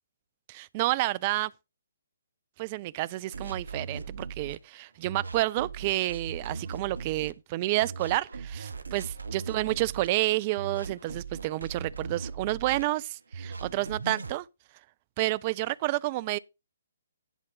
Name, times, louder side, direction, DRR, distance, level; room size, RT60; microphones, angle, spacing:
voice 1, 0.5-1.5 2.6-14.5 15.2-16.4, right 18 dB, 30° right, 0.4 m, -30 dB
sound 1, 3.3-4.6 5.0-7.3 7.8-10.1 10.6-12.8 13.3-14.4, right 5 dB, 70° right, 0.8 m, -39 dB
11.0 x 4.3 x 5.6 m
figure-of-eight pair, 130°, 0 cm